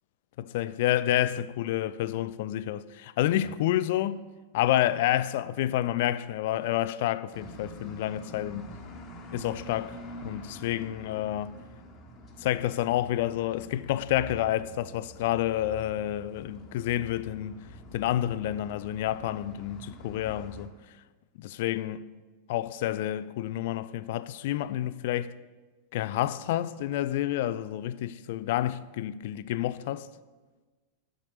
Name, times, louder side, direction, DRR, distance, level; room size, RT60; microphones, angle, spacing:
voice 1, 0.4-4.2 4.5-8.7 9.3-9.9 10.2-11.5 12.4-17.6 17.9-20.7 21.4-22.0 22.5-25.3 25.9-30.1, left 13 dB, 50° left, 0.3 m, -29 dB
sound 1, 7.3-20.7, equal, 30° left, 1.3 m, -46 dB
7.4 x 6.6 x 6.9 m
figure-of-eight pair, 90°, 0 cm